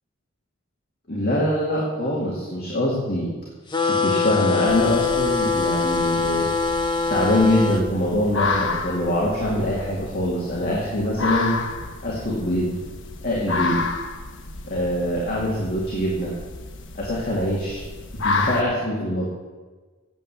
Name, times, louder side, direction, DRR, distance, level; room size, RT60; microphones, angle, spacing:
voice 1, 1.1-3.3 3.9-6.5 7.1-11.6 12.0-12.8 13.2-13.9 14.7-16.3 16.9-17.8 18.2-19.3, left 1 dB, 45° left, -4 dB, 2.3 m, -23 dB
sound 1, 3.7-7.8, left 4 dB, 20° left, 0.8 m, -23 dB
sound 2, 4.7-18.6, left 3 dB, 60° left, 1.1 m, -31 dB
9.3 x 7.9 x 8.1 m, 1.3 s
head